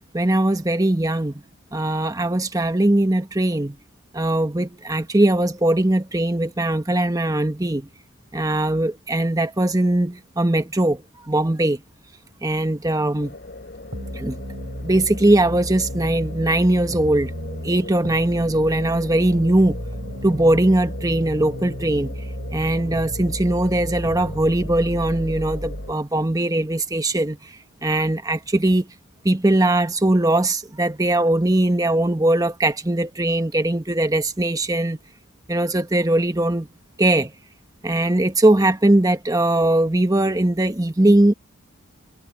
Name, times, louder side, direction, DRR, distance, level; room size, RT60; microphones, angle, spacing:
voice 1, 0.1-1.3 1.7-3.8 4.1-7.9 8.3-11.8 12.4-13.4 14.1-14.4 14.8-17.3 17.6-19.8 20.2-22.1 22.5-27.6 27.8-28.9 29.2-35.0 35.5-36.7 37.0-37.3 37.8-41.3, right 1 dB, 15° right, 1.0 m, -20 dB
sound 1, 13.2-25.9, left 2 dB, 45° left, 3.5 m, -40 dB
sound 2, 13.9-25.9, equal, 55° right, 6.5 m, -33 dB
head